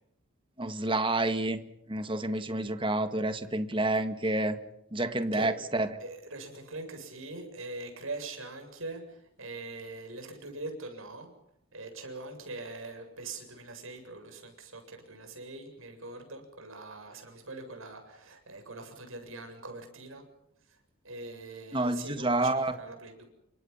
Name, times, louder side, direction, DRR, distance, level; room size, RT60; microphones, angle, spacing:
voice 1, 0.6-1.6 1.9-4.6 4.9-6.0 21.7-22.7, right 2 dB, 25° right, 9 dB, 1.8 m, -29 dB
voice 2, 6.0-11.3 11.7-20.2 21.0-23.2, right 2 dB, 75° right, 5 dB, 7.7 m, -42 dB
30.0 x 26.0 x 5.7 m, 0.79 s
head